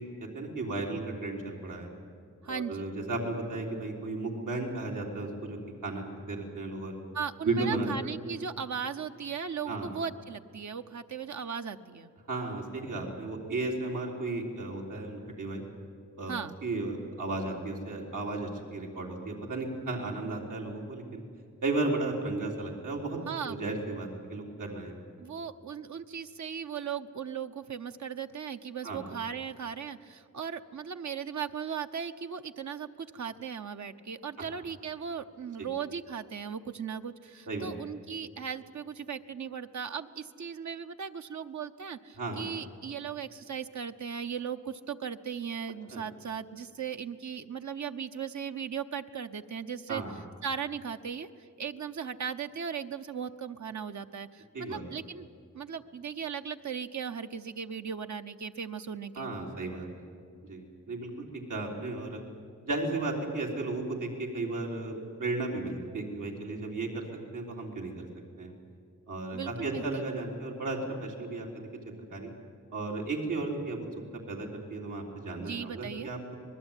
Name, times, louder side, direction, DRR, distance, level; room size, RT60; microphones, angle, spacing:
voice 1, 0.0-1.9 2.5-7.0 7.4-8.1 9.7-9.9 12.3-15.6 16.2-16.3 16.6-21.2 21.6-23.2 23.4-24.9 28.8-29.0 37.5-37.7 42.2-42.4 45.9-46.0 49.9-50.1 54.5-54.8 59.2-60.0 60.4-61.1 61.5-62.2 62.6-67.1 67.3-68.1 68.4-68.5 69.1-71.7 72.0-72.3 72.7-73.9 74.3-76.4, right 2 dB, 90° right, -1 dB, 4.0 m, -34 dB
voice 2, 2.4-2.9 7.1-12.1 16.3-16.5 23.3-23.6 25.2-50.0 50.4-55.3 55.5-59.3 69.3-70.0 75.4-76.1, right 7 dB, 70° right, 8 dB, 0.9 m, -37 dB
25.5 x 20.0 x 9.1 m, 2.3 s
wide cardioid pair, 100°, 30 cm